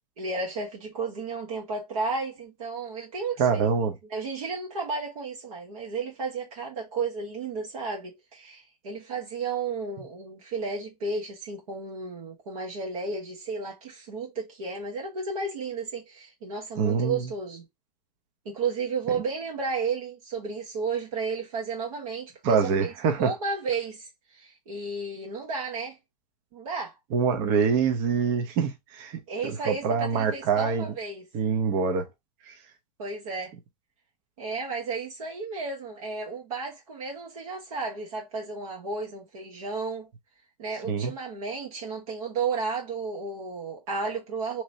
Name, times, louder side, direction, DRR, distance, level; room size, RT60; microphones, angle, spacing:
voice 1, 0.2-3.7 4.1-17.7 18.4-22.9 23.2-26.0 26.5-27.0 29.3-31.3 33.0-33.5 34.4-40.1 40.6-44.6, right 4 dB, 55° right, 1.1 m, -33 dB
voice 2, 3.4-3.9 16.8-17.2 22.4-23.3 27.1-30.9 31.3-32.1 32.5-32.6 40.9-41.1, right 6 dB, 40° right, 0.8 m, -25 dB
3.0 x 2.9 x 2.7 m
figure-of-eight pair, 105°, 21 cm